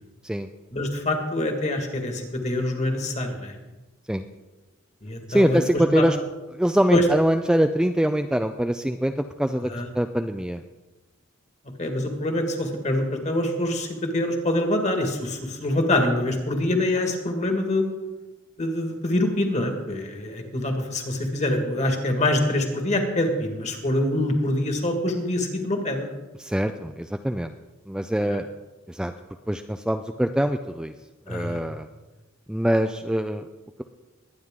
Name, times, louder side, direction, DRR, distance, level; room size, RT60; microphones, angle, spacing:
voice 1, 0.7-3.5 5.0-5.6 6.0-6.1 6.9-7.0 9.7-9.9 11.8-17.8 18.6-26.1 28.2-28.4 31.3-31.6, left 1 dB, 35° left, 4 dB, 1.8 m, -25 dB
voice 2, 5.3-6.2 6.5-10.6 26.4-27.5 27.9-28.5 28.9-29.1 29.5-30.9 31.3-31.9 32.5-33.5, equal, 5° right, 6 dB, 0.3 m, -24 dB
21.0 x 9.4 x 3.7 m, 1.1 s
head